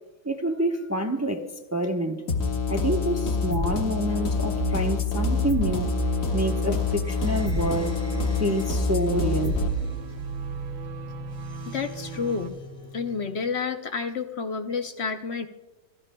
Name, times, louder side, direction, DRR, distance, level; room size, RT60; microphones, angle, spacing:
voice 1, 0.2-2.2 2.7-5.9 6.3-8.0 8.4-9.6, right 1 dB, 15° right, 3 dB, 0.7 m, -27 dB
sound 1, 2.3-9.7, left 5 dB, 75° left, 1.8 m, -27 dB
sound 2, 4.1-12.5, right 7 dB, 70° right, 1.0 m, -34 dB
sound 3, 7.0-13.6, left 2 dB, 30° left, 1.9 m, -43 dB
voice 2, 11.7-12.6 12.9-15.5, left 5 dB, 55° left, 7 dB, 0.9 m, -30 dB
26.5 x 16.5 x 2.2 m, 1.1 s
omnidirectional pair, 1.4 m